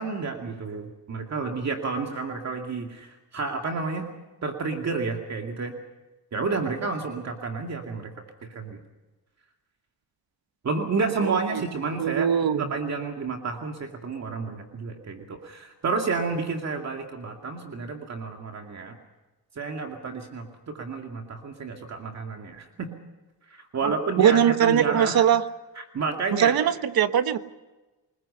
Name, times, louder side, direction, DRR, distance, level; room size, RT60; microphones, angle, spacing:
voice 1, 0.0-4.1 4.4-5.8 6.3-8.1 8.4-8.8 10.6-12.3 12.6-19.0 19.6-20.5 20.7-22.9 23.5-25.3 25.8-26.5, right 4 dB, 40° right, 2.4 m, -30 dB
voice 2, 11.2-11.6 12.0-12.6 23.8-23.9 24.2-25.4 26.3-27.4, right 9 dB, 60° right, 1.3 m, -21 dB
29.0 x 21.0 x 5.7 m
cardioid pair, 150°, 40 cm